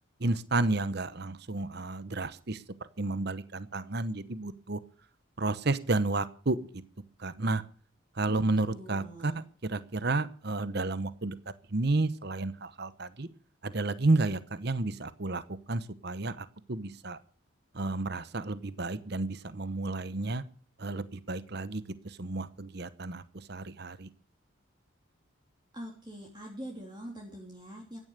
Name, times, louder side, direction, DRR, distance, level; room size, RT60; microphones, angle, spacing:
voice 1, 0.2-2.6 3.0-4.8 5.4-6.8 7.2-7.6 8.1-9.3 9.6-11.3 11.7-13.3 13.6-17.2 17.7-20.4 20.8-24.1, right 2 dB, 50° right, 14 dB, 1.0 m, -31 dB
voice 2, 8.3-9.4 25.7-28.0, equal, 20° right, 0 dB, 3.1 m, -44 dB
16.0 x 11.0 x 6.6 m, 0.43 s
head